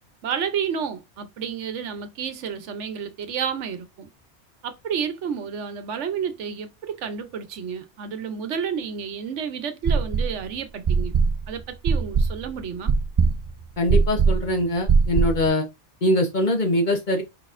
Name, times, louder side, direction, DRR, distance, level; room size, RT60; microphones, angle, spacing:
voice 1, 0.2-4.1 4.6-11.2 11.5-12.9, right 7 dB, 80° right, 1.1 m, -30 dB
sound 1, 9.8-10.4 10.8-15.5, right 5 dB, 50° right, 0.3 m, -20 dB
voice 2, 13.8-15.7 16.0-17.2, left 1 dB, 45° left, 1.0 m, -22 dB
5.0 x 4.1 x 2.5 m
omnidirectional pair, 1.2 m